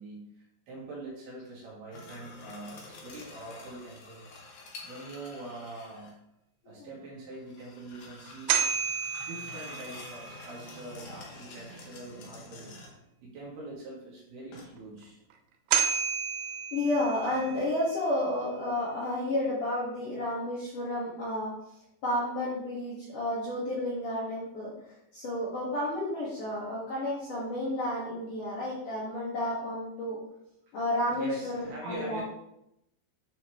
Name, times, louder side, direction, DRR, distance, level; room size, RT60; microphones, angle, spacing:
voice 1, 0.0-4.3 4.8-6.1 6.7-8.5 9.3-12.7 13.2-15.2 31.1-32.2, right 2 dB, 60° right, -5 dB, 3.5 m, -44 dB
sound 1, 1.9-6.2 7.3-13.1 14.5-15.1 17.3-17.7, left 2 dB, 90° left, 1.7 m, -48 dB
sound 2, 8.3-10.4 15.3-15.4 15.7-17.6, right 8 dB, 80° right, 2.7 m, -30 dB
voice 2, 16.7-21.5 22.0-24.7 25.1-30.2 30.7-32.2, left 1 dB, 55° left, -7 dB, 2.4 m, -31 dB
10.0 x 5.8 x 3.1 m, 0.82 s
omnidirectional pair, 5.7 m